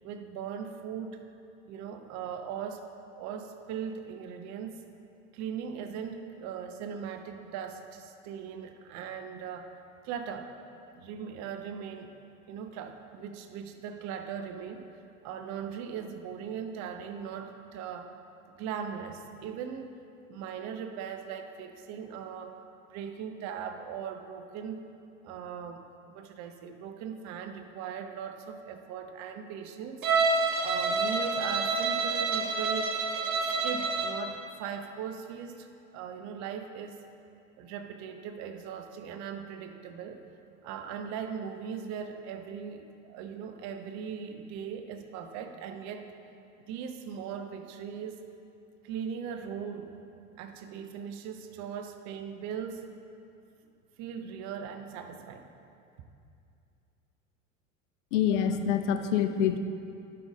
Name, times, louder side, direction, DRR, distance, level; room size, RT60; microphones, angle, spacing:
voice 1, 0.0-1.2 1.7-2.8 3.1-4.8 5.3-9.7 10.0-10.5 10.9-12.1 12.5-14.9 15.2-18.1 18.5-19.9 20.3-22.6 22.9-24.8 25.2-33.0 33.6-35.7 35.9-37.0 37.6-40.2 40.6-46.1 46.6-48.2 48.8-50.0 50.4-52.8 54.0-55.5, right 7 dB, 45° right, 6 dB, 0.7 m, -39 dB
Bowed string instrument, 30.0-34.2, right 4 dB, 80° right, 0.9 m, -28 dB
voice 2, 58.1-59.6, left 8 dB, 60° left, 8 dB, 0.7 m, -26 dB
11.0 x 5.7 x 3.7 m, 2.5 s
figure-of-eight pair, 80°, 40 cm